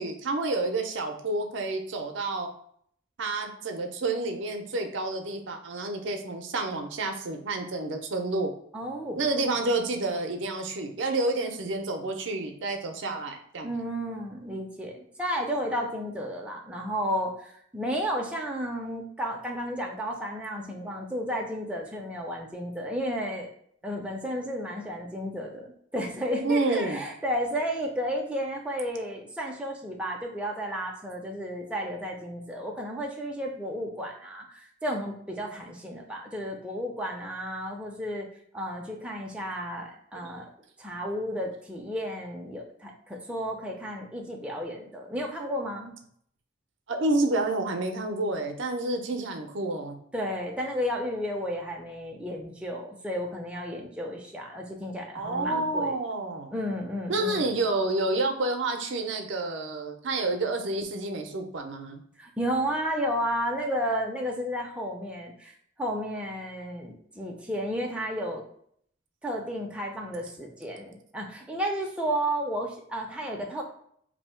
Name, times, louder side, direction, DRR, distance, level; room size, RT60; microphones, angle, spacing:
voice 1, 0.0-2.5 3.2-8.5 9.2-13.7 26.4-27.0 40.2-40.3 46.9-50.0 55.1-56.5 57.1-62.0, right 2 dB, 65° right, 4 dB, 0.5 m, -29 dB
voice 2, 8.7-9.5 13.6-23.5 23.8-38.3 38.5-40.5 40.8-45.9 50.1-56.0 56.5-57.6 62.2-68.4 69.2-73.6, equal, 5° right, 0 dB, 0.5 m, -32 dB
2.7 x 2.7 x 4.3 m, 0.66 s
head